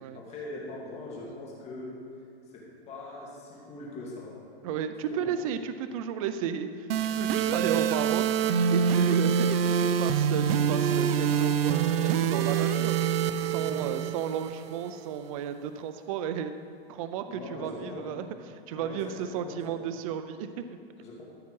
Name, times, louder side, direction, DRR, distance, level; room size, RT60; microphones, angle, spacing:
voice 1, 0.0-2.0 2.5-4.4 5.1-5.4 7.3-7.6 13.6-14.0 17.3-18.2 18.7-19.8 21.0-21.2, left 2 dB, 20° left, -4 dB, 2.1 m, -42 dB
voice 2, 4.6-6.9 7.2-16.5 16.9-18.3 18.7-20.8, right 8 dB, 35° right, 10 dB, 0.4 m, -33 dB
sound 1, 6.9-14.9, right 7 dB, 65° right, 0.7 m, -26 dB
14.0 x 7.1 x 4.7 m, 2.4 s
hypercardioid pair, 155°, 32 cm